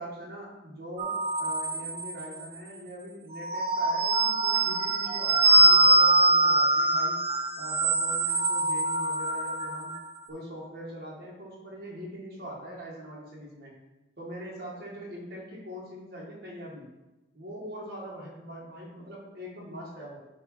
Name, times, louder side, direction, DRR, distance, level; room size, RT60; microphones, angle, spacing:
voice 1, 0.0-7.2 7.6-10.0 10.3-13.8 14.2-16.9 17.3-20.2, equal, 55° right, -4 dB, 1.9 m, -42 dB
sound 1, 1.0-2.4 3.3-10.0, right 2 dB, 30° right, 0.5 m, -23 dB
8.2 x 3.5 x 4.7 m, 1.0 s
head